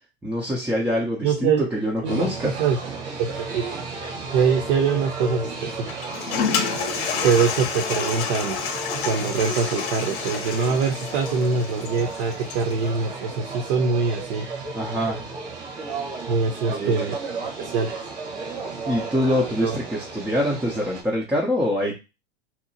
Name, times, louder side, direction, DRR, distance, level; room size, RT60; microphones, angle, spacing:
voice 1, 0.2-2.5 14.7-15.3 16.7-17.0 18.8-22.0, equal, 5° right, -3 dB, 0.3 m, -25 dB
voice 2, 1.2-1.7 2.0-2.8 3.2-3.6 4.3-5.7 7.2-8.6 9.0-14.5 16.3-17.1 17.6-18.0 19.6-19.7, right 5 dB, 60° right, 2 dB, 0.6 m, -23 dB
sound 1, 2.0-21.0, right 4 dB, 80° right, 1.1 m, -34 dB
Toilet flush, 5.9-12.8, left 6 dB, 60° left, 0.6 m, -29 dB
2.8 x 2.0 x 2.6 m, 0.27 s
hypercardioid pair, 110°, 34 cm